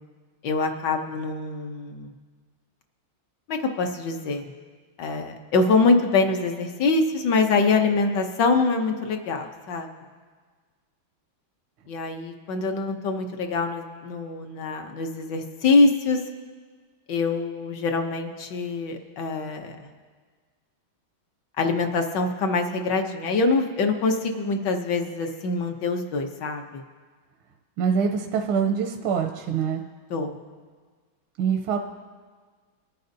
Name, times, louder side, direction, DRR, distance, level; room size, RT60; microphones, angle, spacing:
voice 1, 0.4-2.1 3.5-4.5 5.0-9.9 11.9-16.2 17.1-19.9 21.6-26.8 30.1-30.4, left 3 dB, 65° left, 5 dB, 1.4 m, -24 dB
voice 2, 27.8-29.8 31.4-31.8, right 6 dB, 90° right, 3 dB, 1.5 m, -24 dB
21.0 x 9.2 x 2.7 m, 1.5 s
omnidirectional pair, 2.2 m